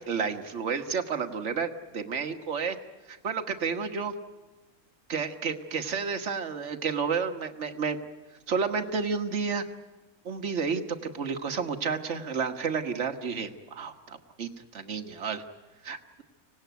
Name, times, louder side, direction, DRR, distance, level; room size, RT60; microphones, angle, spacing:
voice 1, 0.0-2.8 3.1-4.1 5.1-8.0 8.5-9.6 10.2-15.4 15.8-16.2, right 5 dB, 55° right, 6 dB, 1.6 m, -31 dB
25.0 x 18.5 x 9.3 m, 1.2 s
omnidirectional pair, 1.5 m